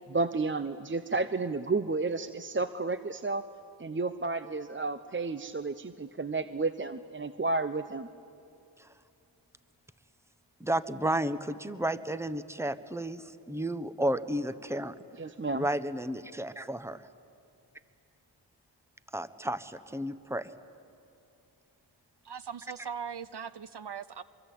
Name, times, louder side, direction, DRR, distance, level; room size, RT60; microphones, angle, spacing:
voice 1, 0.1-3.4 3.8-8.1 15.2-15.7, right 3 dB, 25° right, 0.8 m, -31 dB
voice 2, 10.6-14.9 15.5-17.0 19.1-20.5, right 1 dB, 5° right, 1.2 m, -32 dB
voice 3, 22.2-24.2, right 7 dB, 55° right, 0.9 m, -40 dB
24.5 x 23.5 x 8.7 m
cardioid pair, 50°, 48 cm